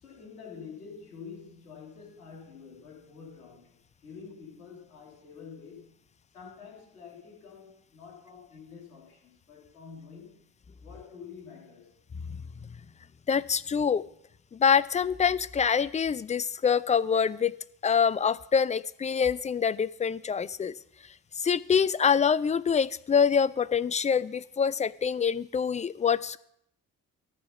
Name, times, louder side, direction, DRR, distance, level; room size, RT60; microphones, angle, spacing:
voice 1, 0.0-3.8 4.0-6.0 6.3-10.4 10.8-12.0, left 6 dB, 85° left, -1 dB, 2.4 m, -47 dB
voice 2, 13.3-14.0 14.5-17.5 17.8-20.7 21.4-26.4, left 6 dB, 20° left, 18 dB, 0.4 m, -25 dB
13.5 x 4.7 x 5.9 m, 0.73 s
figure-of-eight pair, 40°, 43 cm